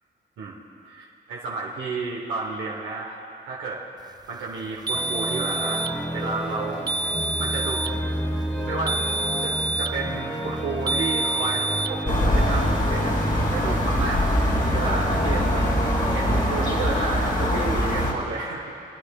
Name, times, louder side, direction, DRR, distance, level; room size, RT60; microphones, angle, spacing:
voice 1, 0.4-3.2 3.4-6.9 7.4-7.9 8.7-9.0 9.4-13.2 13.5-14.3 14.7-18.7, right 4 dB, 90° right, -4 dB, 1.1 m, -32 dB
sound 1, 4.9-16.4, equal, 10° left, 1.0 m, -30 dB
sound 2, 4.9-6.0 6.9-8.0 8.9-10.0 10.9-12.0, right 2 dB, 20° right, 0.4 m, -27 dB
sound 3, 12.1-18.1, equal, 45° left, 2.5 m, -23 dB
25.0 x 9.6 x 2.4 m, 2.6 s
cardioid pair, 60°, 19 cm